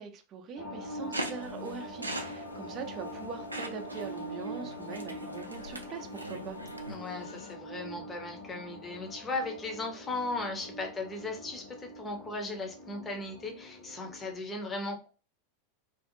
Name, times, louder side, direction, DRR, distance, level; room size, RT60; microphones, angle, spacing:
voice 1, 0.0-6.6, right 6 dB, 35° right, 0.5 m, -42 dB
sound 1, 0.6-14.4, equal, 50° left, 1.0 m, -43 dB
sound 2, 1.1-7.0, right 1 dB, 85° right, 0.4 m, -41 dB
sound 3, 2.0-7.5, left 2 dB, 85° left, 0.3 m, -51 dB
voice 2, 6.9-15.1, left 2 dB, 20° left, 0.7 m, -37 dB
2.6 x 2.4 x 2.6 m
figure-of-eight pair, 90°, 0 cm